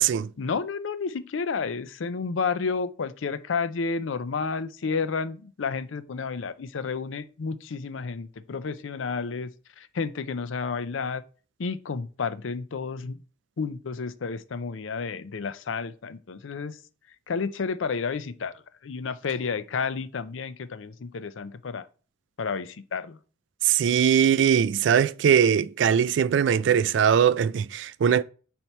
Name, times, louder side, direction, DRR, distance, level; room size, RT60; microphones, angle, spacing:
voice 1, 0.4-9.5 9.8-11.2 11.6-13.2 13.6-16.8 17.3-18.5 18.8-21.9 22.4-23.2, left 5 dB, 80° left, 0.5 m, -31 dB
voice 2, 23.6-28.2, right 8 dB, 65° right, 0.3 m, -21 dB
4.6 x 4.3 x 5.4 m
head